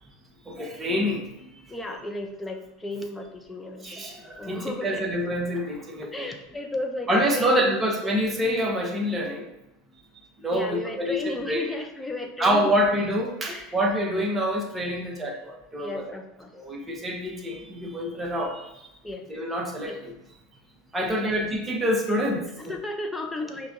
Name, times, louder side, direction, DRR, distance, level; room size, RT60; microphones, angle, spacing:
voice 1, 0.5-1.2 3.8-6.3 7.1-9.4 10.4-11.7 12.4-16.1 16.5-18.6 19.3-20.1 20.9-22.7, equal, 15° right, 0 dB, 0.8 m, -26 dB
voice 2, 1.7-4.1 4.4-5.2 6.0-7.8 10.5-12.7 13.5-13.8 15.8-16.5 19.0-19.2 19.9-20.0 21.2-21.3 22.6-23.7, left 2 dB, 10° left, 3 dB, 0.5 m, -34 dB
5.8 x 2.2 x 2.5 m, 0.89 s
figure-of-eight pair, 80°, 0 cm